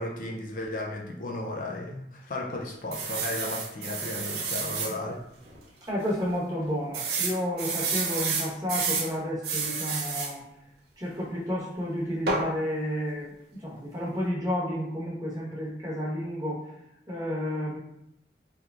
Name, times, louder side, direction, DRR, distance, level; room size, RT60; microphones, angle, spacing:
voice 1, 0.0-5.2, left 1 dB, 45° left, 0 dB, 0.4 m, -34 dB
sound 1, 2.9-4.9 5.5-5.6 5.8-5.9 6.9-9.1 9.4-10.3 12.3-12.5, right 4 dB, 60° right, 0.6 m, -30 dB
voice 2, 5.9-10.4 11.0-13.3 13.6-16.6 17.1-17.8, equal, 20° right, -7 dB, 1.0 m, -31 dB
3.5 x 3.0 x 2.3 m, 0.80 s
head